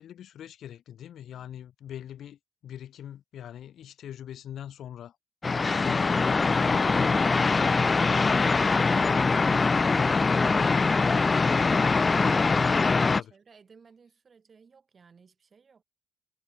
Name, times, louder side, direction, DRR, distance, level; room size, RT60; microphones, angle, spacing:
voice 1, 0.0-5.2 5.5-7.7 12.9-13.3, left 10 dB, 65° left, 1.3 m, -42 dB
sound 1, 5.4-13.2, left 4 dB, 35° left, 0.3 m, -23 dB
voice 2, 8.2-15.8, right 5 dB, 45° right, 5.7 m, -59 dB
hypercardioid pair, 45°, 0 cm